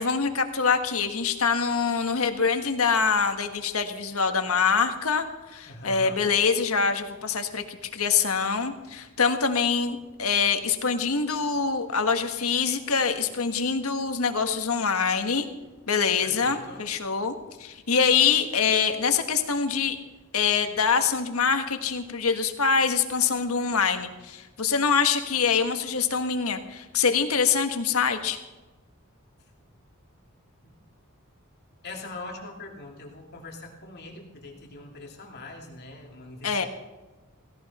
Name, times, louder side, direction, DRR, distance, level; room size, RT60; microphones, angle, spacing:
voice 1, 0.0-5.3 5.5-15.5 15.9-20.0 20.3-28.4 36.4-36.6, left 5 dB, 80° left, 7 dB, 1.6 m, -24 dB
voice 2, 5.7-6.2 16.2-16.9 31.8-36.7, left 2 dB, 50° left, 0 dB, 2.8 m, -42 dB
17.0 x 16.5 x 4.3 m, 1.2 s
head